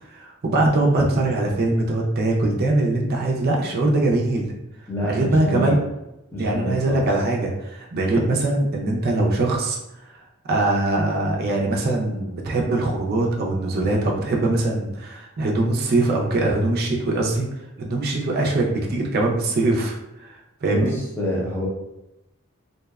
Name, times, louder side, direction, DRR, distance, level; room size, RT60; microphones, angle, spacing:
voice 1, 0.1-4.5 5.1-5.8 6.4-9.8 10.5-17.5 17.8-19.9 20.2-20.3 20.6-20.9, right 2 dB, 50° right, -1 dB, 0.4 m, -22 dB
voice 2, 4.9-5.8 6.3-7.0 20.6-21.7, equal, 10° left, -4 dB, 0.6 m, -27 dB
2.6 x 2.1 x 2.3 m, 0.93 s
head